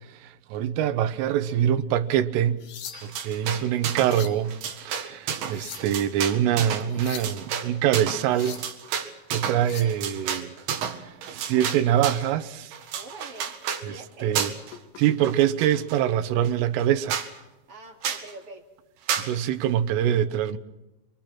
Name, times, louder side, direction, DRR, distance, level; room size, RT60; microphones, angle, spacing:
voice 1, 0.2-2.6 3.0-8.7 9.3-10.5 11.1-12.7 13.8-14.5 15.0-17.2 19.2-20.6, right 10 dB, 90° right, 3.7 m, -24 dB
sound 1, 2.4-3.3 3.8-4.4 5.3-6.0 6.8-7.4 8.1-8.8 9.4-10.0 12.0-12.2 12.7-12.9 13.4-13.5 14.7-15.3 16.4-16.6, left 9 dB, 70° left, 4.1 m, -42 dB
sound 2, 2.9-4.2 4.5-12.3 12.7-13.9 14.3-14.7 15.0-16.0 16.4-16.5 16.8-16.9 17.1-17.3 18.0-18.3 19.1-19.3, right 8 dB, 70° right, 4.3 m, -31 dB
voice 2, 12.9-13.5 13.8-14.4 17.7-18.6, right 2 dB, 35° right, 3.2 m, -44 dB
29.5 x 23.5 x 6.1 m
omnidirectional pair, 5.6 m